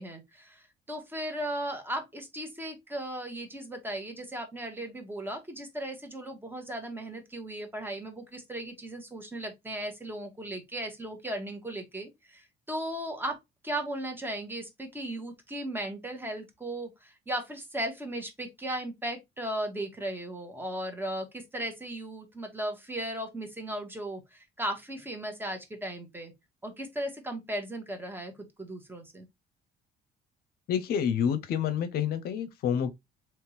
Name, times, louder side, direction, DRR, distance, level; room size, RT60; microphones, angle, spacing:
voice 1, 0.0-26.3 26.6-29.3, right 1 dB, 10° right, 1.2 m, -36 dB
voice 2, 30.7-32.9, left 8 dB, 65° left, 0.6 m, -28 dB
3.5 x 3.0 x 3.0 m
cardioid pair, 110°, 17 cm